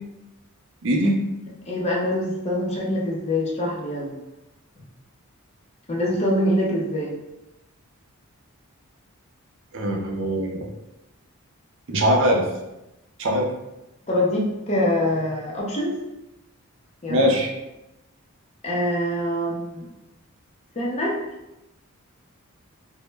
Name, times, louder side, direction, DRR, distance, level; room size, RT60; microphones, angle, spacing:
voice 1, 0.8-1.2 9.7-10.7 11.9-12.4 13.2-13.5 17.1-17.5, equal, 60° right, 0 dB, 0.4 m, -21 dB
voice 2, 1.5-4.1 5.9-7.2 14.1-15.9 17.0-17.3 18.6-19.9 20.8-21.2, left 1 dB, 30° left, -3 dB, 0.5 m, -24 dB
2.1 x 2.0 x 3.2 m, 0.94 s
head